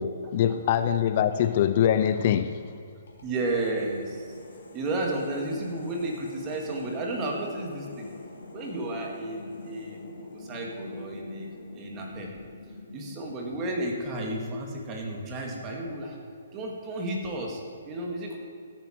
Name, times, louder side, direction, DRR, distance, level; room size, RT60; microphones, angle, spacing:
voice 1, 0.0-2.6, left 9 dB, 45° left, 11 dB, 0.5 m, -24 dB
sound 1, 3.1-14.1, left 2 dB, 80° left, 2.9 m, -45 dB
voice 2, 3.2-4.3 4.7-8.1 8.5-10.0 10.3-11.5 11.8-12.3 12.9-16.2 16.5-18.4, right 2 dB, 25° right, 0 dB, 2.1 m, -32 dB
15.0 x 8.8 x 4.5 m, 2.3 s
hypercardioid pair, 150°, 0 cm